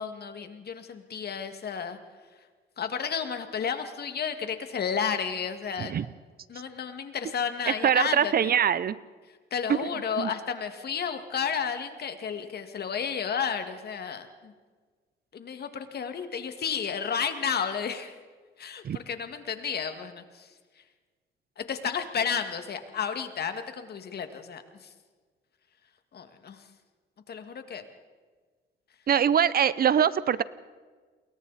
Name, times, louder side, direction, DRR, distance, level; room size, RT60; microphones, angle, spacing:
voice 1, 0.0-2.0 2.8-6.0 6.5-8.5 9.5-14.5 15.3-18.2 18.6-20.5 21.6-24.9 26.1-26.7 27.3-27.8, left 7 dB, 55° left, 7 dB, 2.1 m, -32 dB
voice 2, 7.7-9.0 9.7-9.9 10.2-10.3 18.8-19.0 29.1-30.4, right 8 dB, 50° right, 18 dB, 0.7 m, -23 dB
28.5 x 22.0 x 4.2 m, 1.5 s
cardioid pair, 90°, 20 cm